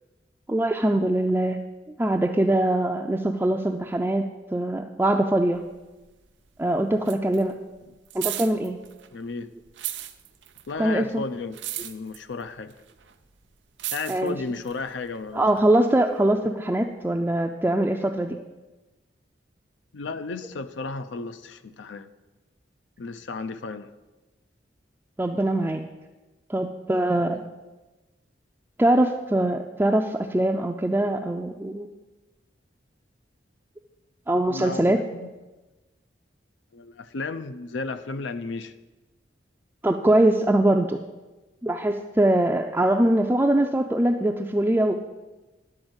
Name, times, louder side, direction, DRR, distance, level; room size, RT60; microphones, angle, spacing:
voice 1, 0.5-1.6 2.0-5.6 6.6-7.6 8.1-8.8 10.8-11.2 14.1-14.4 15.3-18.4 25.2-25.8 26.5-27.4 28.8-31.9 34.3-35.0 39.8-41.0 41.6-45.0, right 1 dB, 10° right, 0.3 m, -22 dB
sound 1, 5.5-6.6 6.8-9.3 9.6-15.6 16.3-16.4, right 14 dB, 80° right, 0.6 m, -36 dB
voice 2, 9.1-9.5 10.7-12.8 13.9-15.7 19.9-22.1 23.0-23.9 27.1-27.2 34.5-35.3 36.7-38.7, left 3 dB, 85° left, 0.6 m, -34 dB
11.0 x 4.3 x 8.0 m
head